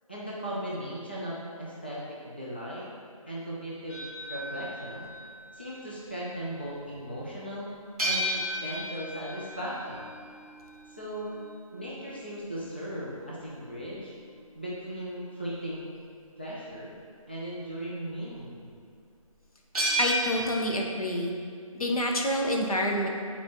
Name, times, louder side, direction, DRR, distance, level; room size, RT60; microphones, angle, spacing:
voice 1, 0.1-2.9 3.3-5.1 5.5-7.7 8.0-10.0 10.9-11.4 11.7-14.1 14.5-15.8 16.4-16.9 17.3-18.7, equal, 20° left, -7 dB, 0.4 m, -37 dB
sound 1, 3.9-6.1 8.0-14.7 19.7-20.5, right 1 dB, ahead, 0.8 m, -34 dB
voice 2, 20.0-21.3 21.7-23.1, equal, 85° left, 0 dB, 1.1 m, -27 dB
7.9 x 4.1 x 2.9 m, 2.2 s
figure-of-eight pair, 175°, 18 cm